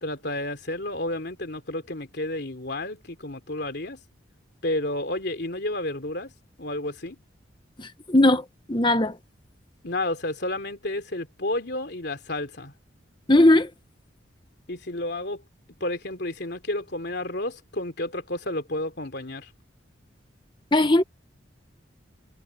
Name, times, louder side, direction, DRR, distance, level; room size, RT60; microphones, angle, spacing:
voice 1, 0.0-4.0 4.6-6.3 6.6-7.2 9.8-12.7 14.7-15.4 15.8-19.5, left 1 dB, 55° left, 3.3 m, -31 dB
voice 2, 7.8-9.2 13.3-13.7 20.7-21.0, left 1 dB, 25° left, 1.2 m, -19 dB
head